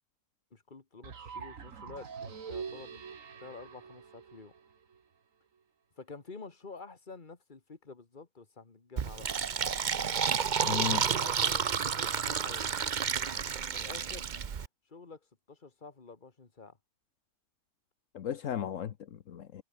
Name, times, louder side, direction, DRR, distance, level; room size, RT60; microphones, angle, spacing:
voice 1, 0.5-3.0 3.4-4.5 6.0-9.3 11.2-12.7 13.7-14.3 14.9-15.2 15.5-16.8, left 4 dB, 35° left, 2.1 m, -49 dB
sound 1, 1.0-5.0, right 6 dB, 80° right, 2.1 m, -44 dB
Fill (with liquid), 9.0-14.7, right 7 dB, 40° right, 0.8 m, -31 dB
voice 2, 10.6-11.1 18.1-19.6, left 9 dB, 75° left, 1.3 m, -35 dB
omnidirectional pair, 1.4 m